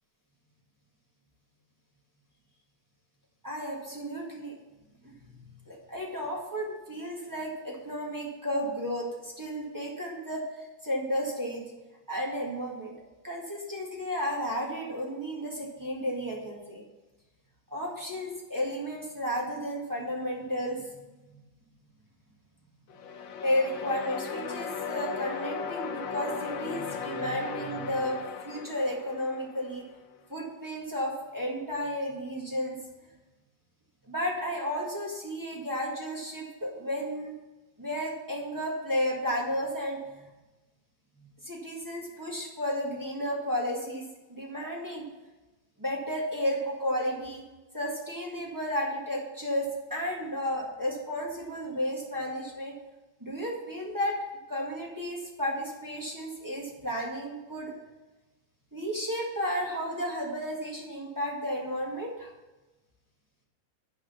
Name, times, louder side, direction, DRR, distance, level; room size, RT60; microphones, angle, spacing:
voice 1, 3.4-4.5 5.0-11.6 12.1-12.9 13.2-16.8 17.7-20.8 23.4-29.8 30.3-32.8 34.1-37.3 37.8-40.3 41.4-44.0 44.3-45.0 45.8-47.4 47.7-52.7 53.2-54.2 54.5-57.7 58.7-62.3, equal, 10° right, -3 dB, 1.8 m, -33 dB
sound 1, 22.9-29.9, left 6 dB, 75° left, 1.4 m, -37 dB
9.5 x 5.0 x 7.1 m, 1.1 s
omnidirectional pair, 2.1 m